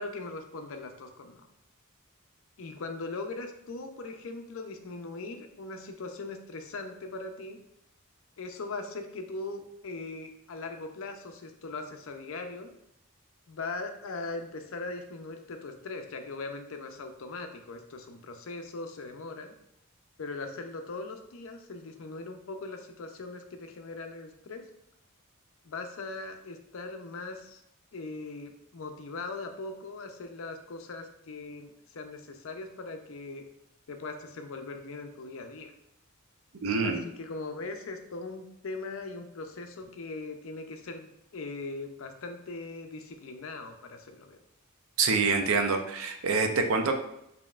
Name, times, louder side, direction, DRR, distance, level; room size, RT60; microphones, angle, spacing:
voice 1, 0.0-1.4 2.6-7.6 8.4-12.7 13.5-19.5 20.2-24.6 25.6-27.6 27.9-33.4 33.9-35.7 36.8-44.4, left 3 dB, 65° left, 5 dB, 0.5 m, -40 dB
voice 2, 36.6-37.0 45.0-46.9, right 4 dB, 70° right, 5 dB, 0.5 m, -26 dB
5.2 x 2.8 x 2.3 m, 0.81 s
head